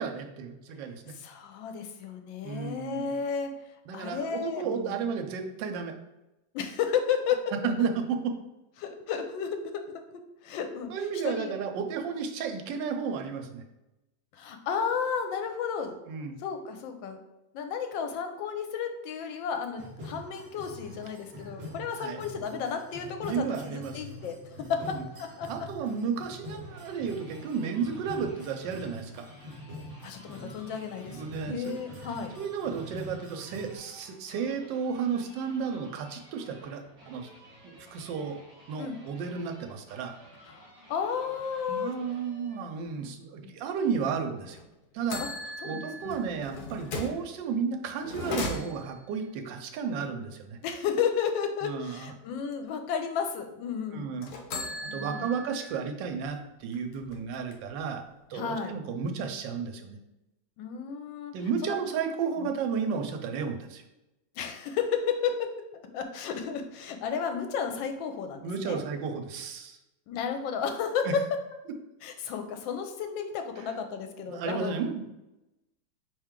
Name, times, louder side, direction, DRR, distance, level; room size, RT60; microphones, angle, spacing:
voice 1, 0.0-1.1 2.4-3.1 3.9-5.9 7.6-8.2 10.9-13.6 16.1-16.4 22.0-22.2 23.2-24.0 24.8-25.0 25.5-29.3 31.1-31.7 32.0-37.3 37.7-38.4 38.7-40.1 41.7-44.6 44.9-45.2 45.6-50.6 51.6-52.1 53.9-54.3 54.9-58.0 58.3-60.0 61.3-63.8 68.4-69.8 73.6-73.7 74.3-75.1, right 6 dB, 75° right, 5 dB, 1.3 m, -33 dB
voice 2, 1.1-3.5 3.9-5.0 6.5-7.4 8.8-9.8 10.4-10.9 11.2-11.6 14.3-16.0 16.4-17.2 17.5-25.5 30.0-32.3 38.8-39.0 40.5-41.9 43.4-43.5 45.2-45.3 45.6-46.2 50.6-54.2 54.9-55.3 58.3-58.7 60.6-61.3 61.6-61.8 64.4-65.5 65.9-68.8 70.1-71.2 72.0-74.7, left 7 dB, 85° left, 6 dB, 1.3 m, -32 dB
sound 1, 19.8-33.8, equal, 45° right, 0.9 m, -45 dB
sound 2, 26.3-42.8, equal, 20° right, 1.4 m, -54 dB
sound 3, 44.5-44.6 45.1-47.2 48.0-49.1 54.2-55.8 56.2-56.3 56.7-57.8, left 2 dB, 65° left, 1.1 m, -37 dB
4.4 x 3.1 x 3.6 m, 0.95 s
omnidirectional pair, 2.0 m